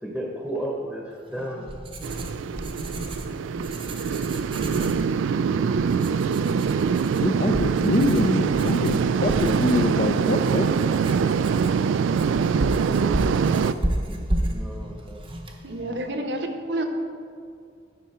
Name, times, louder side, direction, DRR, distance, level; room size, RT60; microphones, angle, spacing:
voice 1, 0.0-1.7 12.8-13.1 14.1-15.2, right 1 dB, ahead, -1 dB, 0.9 m, -33 dB
Writing, 1.3-16.1, right 1 dB, 25° right, 0.7 m, -33 dB
sound 1, 2.0-13.7, right 6 dB, 85° right, 0.3 m, -24 dB
voice 2, 7.2-10.7, left 2 dB, 40° left, 4 dB, 0.4 m, -24 dB
voice 3, 15.6-16.8, right 1 dB, 65° right, 5 dB, 0.9 m, -29 dB
13.0 x 5.5 x 4.3 m, 2.3 s
head